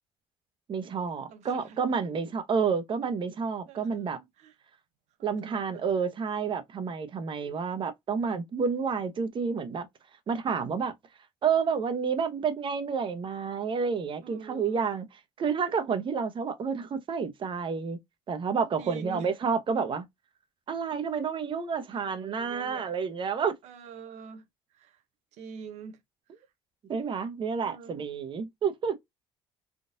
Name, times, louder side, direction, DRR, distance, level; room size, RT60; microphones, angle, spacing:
voice 1, 0.7-4.2 5.2-9.9 10.3-10.9 11.4-15.1 15.4-18.0 18.3-20.0 20.7-23.5 26.9-29.0, right 6 dB, 45° right, 0.9 m, -29 dB
voice 2, 1.3-1.8 3.7-4.6 5.2-6.1 14.2-14.9 18.8-19.3 21.9-22.9 23.6-25.0 25.3-26.0 26.3-26.5 27.6-28.0, right 6 dB, 75° right, 0.9 m, -46 dB
3.7 x 2.4 x 2.6 m
cardioid pair, 95°, 12 cm